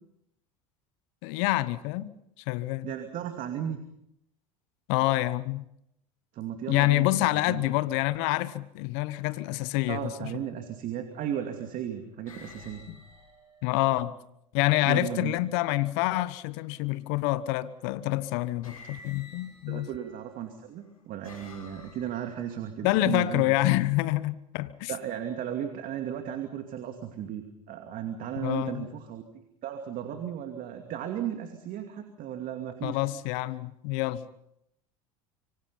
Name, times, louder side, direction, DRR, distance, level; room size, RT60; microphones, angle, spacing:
voice 1, 1.2-2.1 2.5-2.9 4.9-5.6 6.7-10.3 12.9-13.0 13.6-14.1 14.5-19.9 22.8-24.9 28.4-28.9 32.8-34.3, left 17 dB, 65° left, 1.2 m, -27 dB
voice 2, 2.8-3.8 6.3-7.1 7.3-7.7 9.9-12.9 14.9-15.3 19.7-23.5 24.9-33.0, right 10 dB, 50° right, 2.5 m, -35 dB
sound 1, 10.0-10.3 11.2-11.6 12.3-14.3 16.5-17.1 18.1-18.2 18.6-20.3 20.8-22.5, left 3 dB, 90° left, 6.2 m, -51 dB
26.0 x 24.5 x 5.6 m
hypercardioid pair, 80°, 18 cm